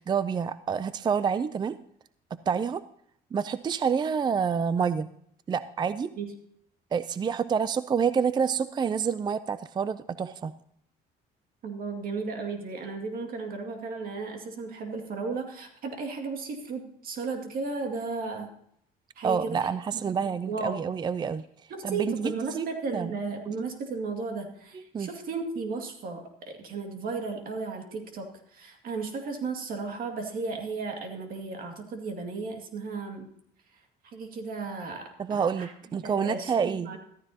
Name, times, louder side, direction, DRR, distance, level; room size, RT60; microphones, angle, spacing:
voice 1, 0.0-1.8 2.5-2.8 3.3-5.1 5.5-6.1 6.9-10.5 19.2-21.4 21.8-22.7 22.9-23.1 24.9-25.1 35.2-36.9, right 6 dB, 25° right, 15 dB, 0.4 m, -28 dB
voice 2, 11.6-18.5 19.2-20.8 21.7-33.3 34.0-35.7 36.0-37.0, right 4 dB, 60° right, 4 dB, 2.3 m, -35 dB
14.0 x 14.0 x 2.8 m, 0.68 s
cardioid pair, 110°, 17 cm